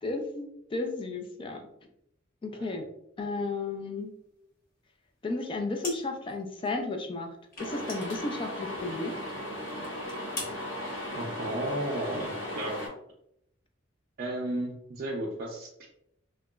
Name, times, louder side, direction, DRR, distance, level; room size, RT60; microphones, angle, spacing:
voice 1, 0.0-1.7 2.4-2.8 3.2-4.1 5.2-7.3 7.6-9.1, left 3 dB, 25° left, 4 dB, 0.3 m, -33 dB
sound 1, 5.8-6.4 6.6-6.7 7.5-8.9 9.3-9.4 9.8-10.5, left 2 dB, 45° left, 0.8 m, -41 dB
sound 2, 7.6-12.9, left 1 dB, 75° left, 1.0 m, -37 dB
voice 2, 11.2-12.8 14.2-15.9, right 1 dB, 50° right, -4 dB, 0.4 m, -34 dB
2.8 x 2.2 x 2.2 m, 0.75 s
head